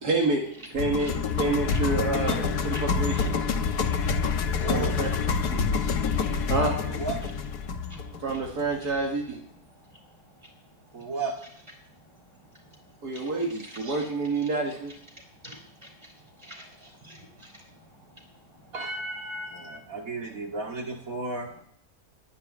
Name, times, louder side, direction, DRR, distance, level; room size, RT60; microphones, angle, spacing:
voice 1, 0.0-0.4 0.7-3.3 4.7-5.1 5.5-5.7 6.5-6.8 8.2-9.4 13.0-14.9, right 3 dB, 80° right, -1 dB, 2.7 m, -28 dB
sound 1, 0.8-8.9, left 5 dB, 85° left, 1.7 m, -27 dB
voice 2, 4.6-5.0 7.0-7.2 10.9-11.4 18.7-21.5, right 3 dB, 60° right, 1 dB, 3.2 m, -33 dB
voice 3, 16.4-17.5, equal, 15° right, 1 dB, 4.5 m, -46 dB
11.5 x 10.5 x 9.6 m, 0.67 s
omnidirectional pair, 1.7 m